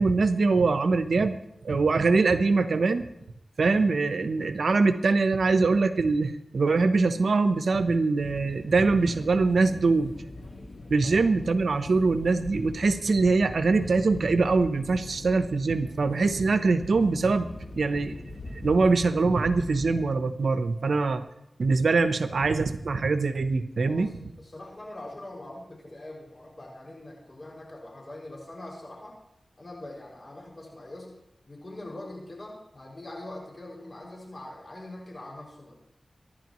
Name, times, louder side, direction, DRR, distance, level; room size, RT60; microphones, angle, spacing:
voice 1, 0.0-1.3 1.6-3.1 3.6-10.1 10.9-17.5 17.8-18.2 18.5-21.2 21.6-24.1, right 3 dB, 85° right, 10 dB, 0.8 m, -23 dB
sound 1, 8.2-20.1, left 2 dB, 60° left, 1.8 m, -42 dB
voice 2, 23.8-29.2 29.6-31.1 31.5-35.7, left 1 dB, 45° left, -2 dB, 5.9 m, -43 dB
24.5 x 11.5 x 3.1 m, 0.80 s
cardioid pair, 50°, 0 cm